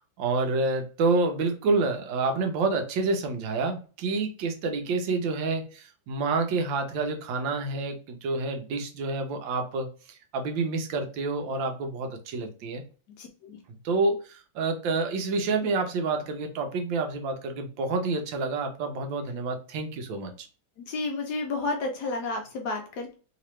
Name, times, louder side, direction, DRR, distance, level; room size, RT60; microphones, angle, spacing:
voice 1, 0.2-12.8 13.8-20.5, right 3 dB, 75° right, 5 dB, 1.4 m, -28 dB
voice 2, 13.2-13.6 20.8-23.1, left 3 dB, 70° left, 3 dB, 1.0 m, -31 dB
3.3 x 2.9 x 3.0 m, 0.37 s
omnidirectional pair, 2.1 m